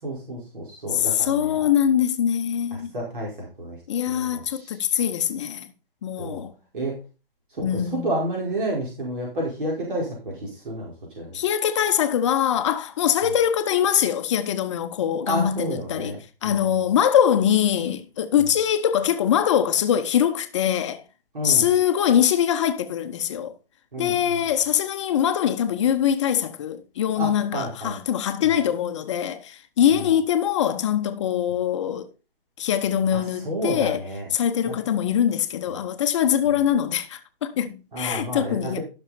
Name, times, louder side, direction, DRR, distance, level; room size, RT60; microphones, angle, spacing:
voice 1, 0.0-1.6 2.7-3.8 4.1-4.8 6.2-6.4 6.7-6.9 7.5-11.4 15.3-16.2 16.4-16.8 21.3-21.7 23.9-24.4 27.1-28.0 28.4-28.5 29.9-30.1 33.1-34.3 34.6-34.7 37.9-38.8, right 1 dB, 60° right, 4.9 m, -30 dB
voice 2, 0.9-2.9 3.9-5.7 6.0-6.5 7.6-8.1 11.3-21.0 21.4-23.5 24.0-32.1 32.6-34.0 34.3-38.8, left 9 dB, 30° left, 0.9 m, -23 dB
14.0 x 6.5 x 4.2 m
figure-of-eight pair, 140°, 29 cm